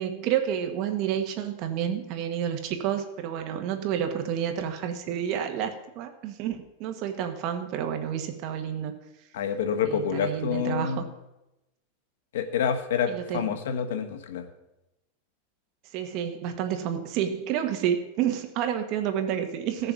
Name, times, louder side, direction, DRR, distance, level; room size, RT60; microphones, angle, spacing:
voice 1, 0.0-9.0 9.8-11.0 13.1-13.5 15.9-19.9, right 9 dB, 40° right, 6 dB, 1.3 m, -29 dB
voice 2, 9.3-11.0 12.3-14.5, left 7 dB, 85° left, 8 dB, 1.4 m, -28 dB
15.5 x 6.8 x 5.3 m, 0.94 s
supercardioid pair, 165°, 0 cm